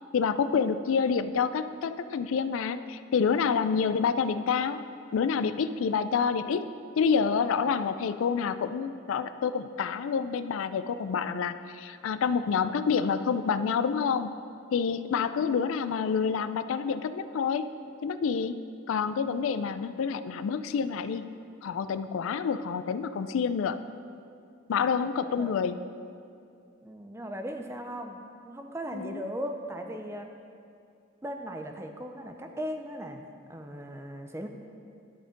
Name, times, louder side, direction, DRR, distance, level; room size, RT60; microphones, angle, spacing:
voice 1, 0.1-4.8 5.1-6.6 7.0-14.3 14.7-17.7 18.0-18.5 18.9-21.2 21.6-23.8 24.7-25.8 28.9-29.2, left 6 dB, 85° left, 12 dB, 0.3 m, -28 dB
voice 2, 26.8-30.3 31.2-33.2 33.5-34.5, equal, 15° right, 4 dB, 0.5 m, -38 dB
12.0 x 4.3 x 5.2 m, 2.4 s
head